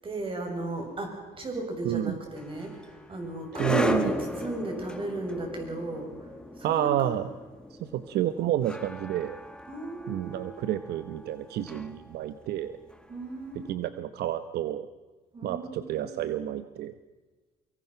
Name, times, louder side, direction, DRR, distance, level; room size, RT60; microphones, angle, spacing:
voice 1, 0.0-6.3 6.6-7.1 9.7-10.6 13.1-13.9 15.3-16.2, right 2 dB, 30° right, 3 dB, 7.2 m, -36 dB
voice 2, 1.8-2.2 3.6-4.1 6.6-7.3 7.8-9.4 10.1-12.8 13.7-14.9 15.4-16.9, right 12 dB, 75° right, 11 dB, 1.0 m, -29 dB
sound 1, 2.4-13.5, left 1 dB, 5° left, 1.8 m, -36 dB
24.0 x 24.0 x 5.8 m, 1.3 s
cardioid pair, 110°, 17 cm